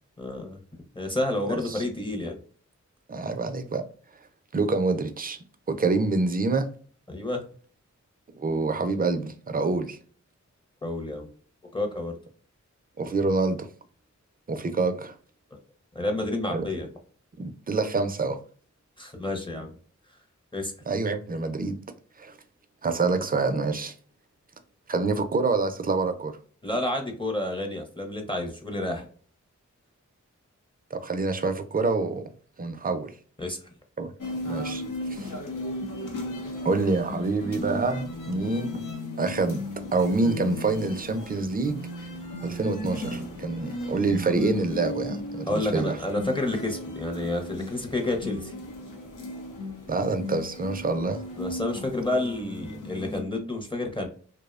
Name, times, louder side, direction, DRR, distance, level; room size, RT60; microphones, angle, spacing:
voice 1, 0.2-0.6 0.9-2.4 7.1-7.4 10.8-11.3 11.7-12.1 15.9-16.9 19.0-19.7 20.5-20.7 26.6-29.1 33.4-33.6 45.5-48.5 51.4-54.1, left 2 dB, 15° left, 0.6 m, -29 dB
voice 2, 1.5-1.8 3.1-3.8 4.5-5.4 5.7-6.7 8.3-10.0 13.0-13.7 14.5-15.1 16.5-16.7 17.4-18.4 20.9-21.8 22.2-22.3 22.8-23.9 24.9-26.4 30.9-32.3 32.6-33.1 34.0-34.1 34.4-35.3 36.6-38.8 39.2-39.6 39.9-41.8 42.4-46.0 49.9-51.2, right 3 dB, 30° right, 0.4 m, -26 dB
sound 1, 34.2-53.2, left 1 dB, 85° left, 0.7 m, -35 dB
2.6 x 2.0 x 2.3 m
wide cardioid pair, 65°, 30 cm